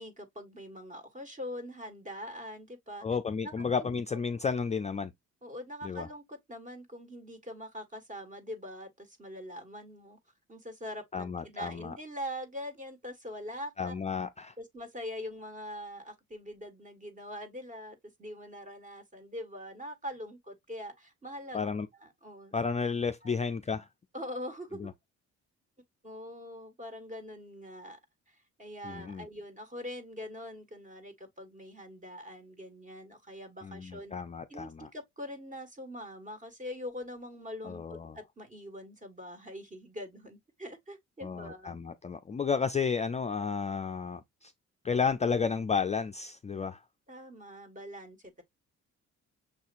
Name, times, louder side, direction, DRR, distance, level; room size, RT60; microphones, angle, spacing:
voice 1, 0.0-3.0 3.6-4.0 5.4-10.2 10.5-13.9 14.6-21.7 22.0-22.6 22.9-23.3 24.1-24.9 26.0-28.0 28.3-34.1 34.5-37.8 38.1-41.8 47.1-48.4, equal, 25° right, 1.7 m, -43 dB
voice 2, 3.0-5.1 5.8-6.1 11.1-11.9 13.8-14.5 21.5-21.9 22.5-23.9 24.8-24.9 28.8-29.3 33.6-34.9 37.6-38.2 41.2-44.5 44.8-46.8, left 5 dB, 25° left, 0.4 m, -32 dB
6.5 x 2.8 x 2.5 m
cardioid pair, 90°, 30 cm